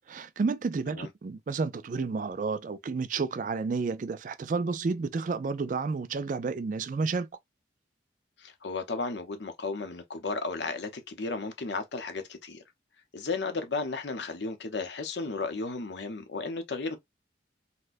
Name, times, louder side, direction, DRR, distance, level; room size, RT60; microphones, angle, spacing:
voice 1, 0.1-7.3, right 4 dB, 45° right, 0.3 m, -31 dB
voice 2, 8.4-12.6 13.1-17.0, left 3 dB, 75° left, 0.7 m, -34 dB
4.2 x 2.2 x 2.4 m
head